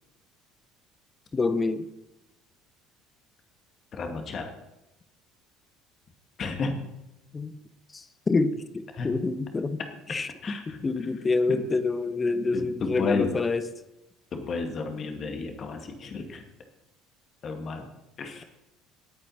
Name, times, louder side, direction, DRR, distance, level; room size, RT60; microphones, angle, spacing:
voice 1, 1.3-1.9 7.3-7.5 7.9-9.8 10.1-13.6, left 3 dB, 25° left, 12 dB, 1.1 m, -27 dB
voice 2, 3.9-4.5 6.4-6.9 8.9-9.1 10.4-10.8 11.5-11.6 12.5-13.4 14.3-16.4 17.4-17.9 18.2-18.4, left 4 dB, 40° left, 4 dB, 2.1 m, -32 dB
19.0 x 8.8 x 4.2 m, 0.96 s
figure-of-eight pair, 60°, 0 cm